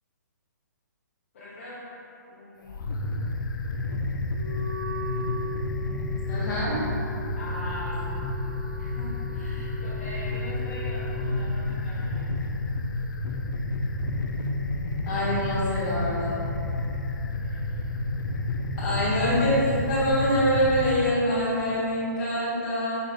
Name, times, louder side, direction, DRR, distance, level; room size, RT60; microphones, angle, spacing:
voice 1, 1.3-1.8 2.3-2.7 7.4-8.2 8.7-12.3 17.4-17.9, left 1 dB, 40° left, -10 dB, 0.8 m, -41 dB
sound 1, 2.6-21.0, left 2 dB, 85° left, 0.4 m, -30 dB
Wind instrument woodwind instrument, 4.3-11.4, left 3 dB, 85° right, 0.7 m, -39 dB
voice 2, 6.3-6.8 15.1-16.4 18.8-22.9, equal, 20° left, -11 dB, 1.5 m, -25 dB
5.2 x 3.9 x 2.3 m, 2.8 s
hypercardioid pair, 165°, 10 cm